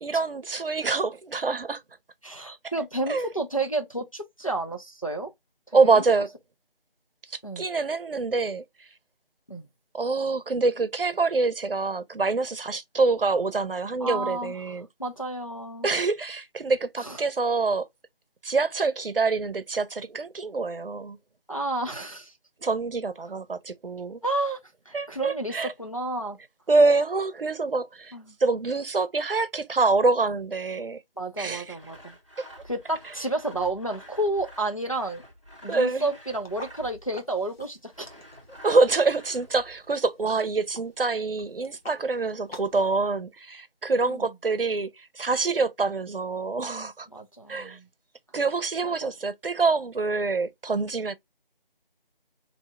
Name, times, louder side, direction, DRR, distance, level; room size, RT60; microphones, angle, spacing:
voice 1, 0.0-1.8 3.1-3.3 5.7-6.3 7.3-8.6 9.9-14.9 15.8-17.9 18.4-21.2 22.6-24.2 24.9-25.7 26.7-28.1 28.4-31.0 31.4-31.7 32.4-32.5 35.7-36.1 38.6-47.1 47.5-47.8 48.3-51.1, right 3 dB, 70° right, 0.7 m, -25 dB
voice 2, 2.2-5.3 5.7-6.0 7.4-7.7 9.5-9.7 14.0-15.9 17.0-17.2 21.5-22.3 24.2-24.6 24.9-25.5 25.8-26.4 28.1-28.4 31.2-32.2 32.6-35.2 35.6-38.1 44.1-44.3 47.1-47.9 48.8-49.1, right 2 dB, 35° left, 0.5 m, -31 dB
Sawing, 31.7-37.1 37.9-39.9, equal, 35° right, 0.7 m, -49 dB
sound 1, 36.4-42.8, left 1 dB, 85° left, 1.3 m, -49 dB
2.7 x 2.3 x 4.1 m
figure-of-eight pair, 175°, 29 cm